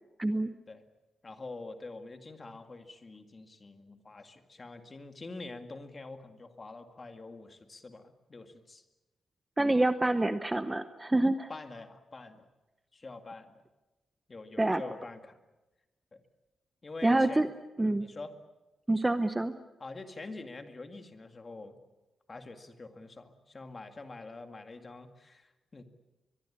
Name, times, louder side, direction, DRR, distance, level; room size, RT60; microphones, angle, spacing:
voice 1, 0.2-0.5 9.6-11.5 14.6-14.8 17.0-17.5 17.8-18.1 18.9-19.5, right 2 dB, 10° right, 10 dB, 0.8 m, -26 dB
voice 2, 1.2-8.8 11.5-12.5 12.9-13.6 14.3-15.4 16.1-16.2 16.8-17.5 17.8-18.3 19.8-21.8 22.3-25.8, left 3 dB, 25° left, 7 dB, 2.0 m, -45 dB
23.0 x 22.5 x 8.6 m, 1.1 s
wide cardioid pair, 170°, 0 cm